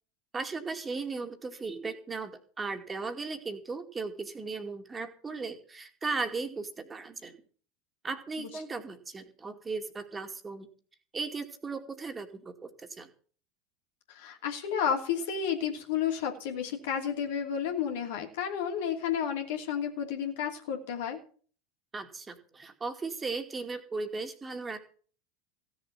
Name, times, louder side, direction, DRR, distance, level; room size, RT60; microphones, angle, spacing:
voice 1, 0.3-7.4 8.0-10.7 11.1-13.1 21.9-24.9, right 4 dB, 20° right, 6 dB, 2.4 m, -37 dB
voice 2, 14.1-21.2, left 8 dB, 65° left, 4 dB, 2.8 m, -31 dB
16.0 x 7.4 x 7.3 m, 0.43 s
figure-of-eight pair, 80°, 0 cm